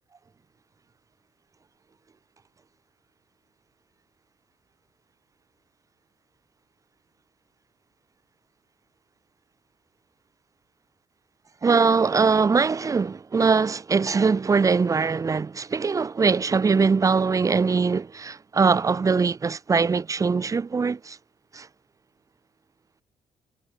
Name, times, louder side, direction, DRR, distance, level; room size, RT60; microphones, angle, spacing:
voice 1, 11.6-21.2 21.5-21.7, right 5 dB, 30° right, 0.7 m, -22 dB
cardioid pair, 80°, 11 cm